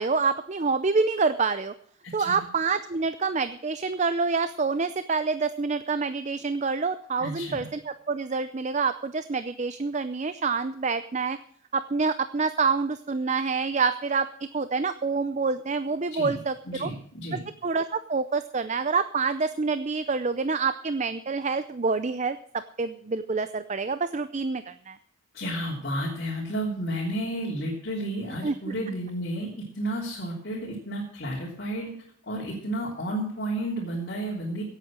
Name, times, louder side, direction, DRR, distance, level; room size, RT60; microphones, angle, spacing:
voice 1, 0.0-1.7 2.1-11.4 11.7-16.9 17.3-25.0 28.4-28.5, right 4 dB, 35° right, 12 dB, 0.5 m, -27 dB
voice 2, 2.0-2.4 7.2-7.7 16.1-16.4 16.6-17.4 25.3-31.9 32.3-34.6, right 1 dB, 50° left, -3 dB, 3.3 m, -32 dB
16.5 x 8.3 x 6.2 m, 0.63 s
head